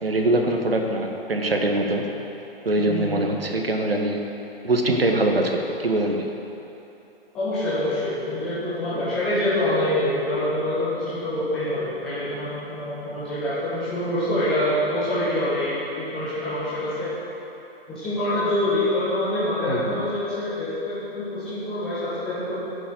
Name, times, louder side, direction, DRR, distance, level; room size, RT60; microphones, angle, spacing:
voice 1, 0.0-2.1 2.7-4.2 4.6-6.3 19.7-20.0, right 1 dB, 70° right, 2 dB, 1.7 m, -23 dB
voice 2, 2.7-3.2 7.3-17.1 17.9-22.6, left 1 dB, 5° left, -12 dB, 0.3 m, -26 dB
13.5 x 7.7 x 6.5 m, 3.0 s
figure-of-eight pair, 130°, 30 cm